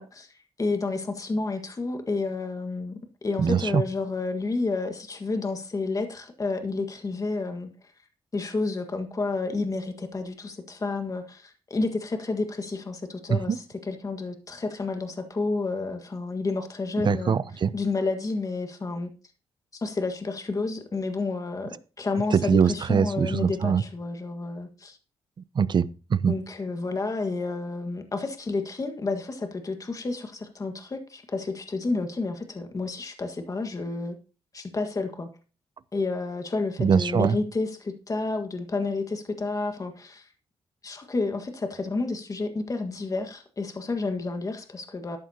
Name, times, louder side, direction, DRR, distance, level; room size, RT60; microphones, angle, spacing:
voice 1, 0.0-7.7 8.3-17.4 17.7-19.1 19.7-25.0 26.3-34.2 34.5-35.3 35.9-40.3 40.8-45.2, left 3 dB, 30° left, 6 dB, 1.6 m, -30 dB
voice 2, 3.4-3.8 13.3-13.6 17.0-17.7 22.3-23.8 25.5-26.4 36.8-37.4, right 6 dB, 45° right, 17 dB, 0.7 m, -23 dB
13.0 x 11.5 x 2.9 m, 0.35 s
cardioid pair, 80°, 11 cm